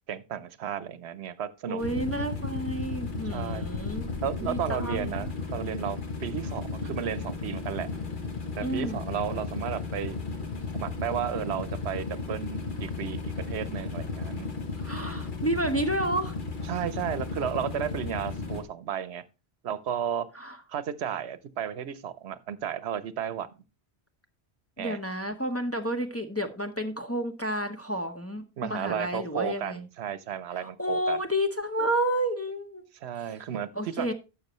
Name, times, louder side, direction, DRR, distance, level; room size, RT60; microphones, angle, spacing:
voice 1, 0.1-1.8 3.3-3.7 4.2-7.9 8.6-14.5 16.7-19.2 19.6-20.3 20.7-23.5 24.8-25.0 28.6-31.2 33.0-33.7 34.0-34.1, right 9 dB, 80° right, 0.9 m, -33 dB
voice 2, 1.7-4.1 4.4-5.3 8.6-9.0 14.8-16.4 20.3-20.6 24.8-29.9 30.6-32.8 33.7-34.1, right 1 dB, 15° left, 0.7 m, -30 dB
sound 1, 1.8-18.6, left 4 dB, 50° left, 1.4 m, -34 dB
12.0 x 7.3 x 3.0 m
omnidirectional pair, 1.1 m